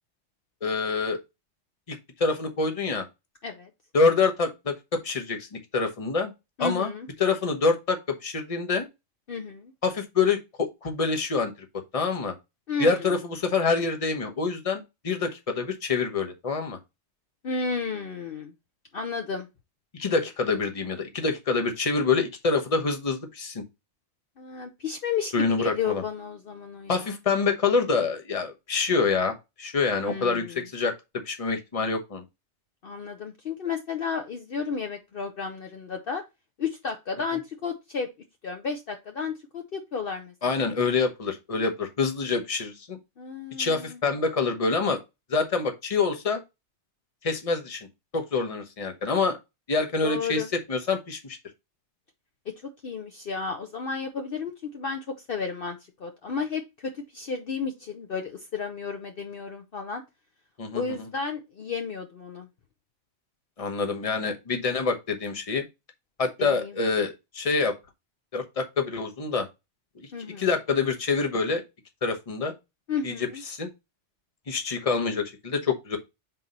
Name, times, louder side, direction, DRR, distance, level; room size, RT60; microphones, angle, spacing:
voice 1, 0.6-1.2 1.9-3.0 3.9-5.5 5.7-6.3 6.6-6.9 7.2-8.9 9.8-11.5 11.9-12.3 12.8-16.8 19.9-23.6 25.3-26.0 26.9-30.9 31.2-32.2 40.4-43.0 43.6-45.0 45.3-46.4 47.2-47.9 48.1-49.4 49.7-50.4 50.7-51.4 60.6-60.8 63.6-65.6 66.2-67.7 68.3-69.5 70.4-71.6 72.0-72.5 73.0-73.7 74.5-76.0, left 4 dB, 30° left, 1.0 m, -26 dB
voice 2, 6.6-7.1 9.3-9.7 12.7-13.1 17.4-18.5 18.9-19.5 24.4-27.2 30.0-30.7 32.8-36.2 36.6-38.1 38.4-40.7 43.2-44.0 50.0-50.5 52.5-52.6 52.8-60.0 60.7-62.5 66.4-66.7 70.1-70.5 72.9-73.4, left 5 dB, 55° left, 0.9 m, -32 dB
4.4 x 4.0 x 5.3 m
omnidirectional pair, 1.2 m